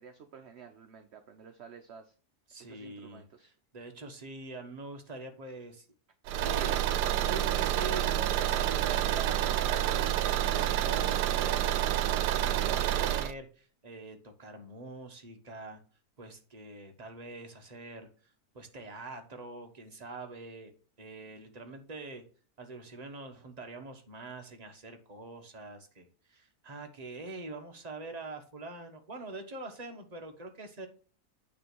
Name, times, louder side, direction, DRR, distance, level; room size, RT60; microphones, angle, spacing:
voice 1, 0.0-2.1 2.6-3.5, right 6 dB, 50° right, 6 dB, 0.9 m, -52 dB
voice 2, 2.5-5.8 6.3-15.8 16.2-18.1 18.5-20.7 21.0-22.2 22.6-30.9, right 2 dB, 25° right, 4 dB, 1.2 m, -44 dB
Car / Engine, 6.3-13.3, right 12 dB, 85° right, 1.2 m, -28 dB
9.3 x 3.4 x 6.2 m, 0.40 s
omnidirectional pair, 1.7 m